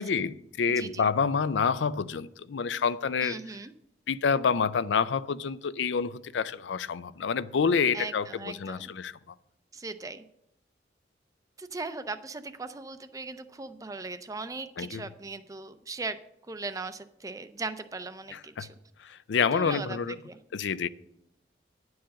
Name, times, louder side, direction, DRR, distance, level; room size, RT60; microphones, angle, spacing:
voice 1, 0.0-3.4 4.1-9.1 14.8-15.0 18.3-18.7 19.0-20.2 20.5-20.9, left 6 dB, 80° left, 0.4 m, -28 dB
voice 2, 0.7-1.1 3.2-3.7 7.9-8.9 9.7-10.2 11.6-16.2 16.5-18.7 19.4-20.0 20.3-20.4, right 3 dB, 20° right, 0.5 m, -38 dB
10.5 x 4.8 x 7.4 m
head